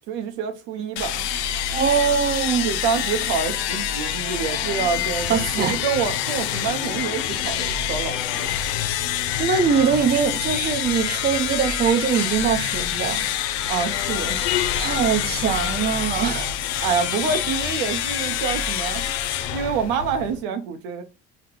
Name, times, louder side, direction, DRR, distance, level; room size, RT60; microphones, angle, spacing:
voice 1, 0.1-1.2 2.6-8.5 13.7-14.4 16.8-19.0 19.5-21.0, right 6 dB, 85° right, 0.7 m, -27 dB
sound 1, 1.0-20.4, left 10 dB, 85° left, 0.5 m, -26 dB
voice 2, 1.7-2.7 5.3-5.8 9.4-13.3 14.8-16.5, right 7 dB, 30° right, 0.7 m, -22 dB
4.8 x 2.2 x 3.7 m
hypercardioid pair, 60°, 32 cm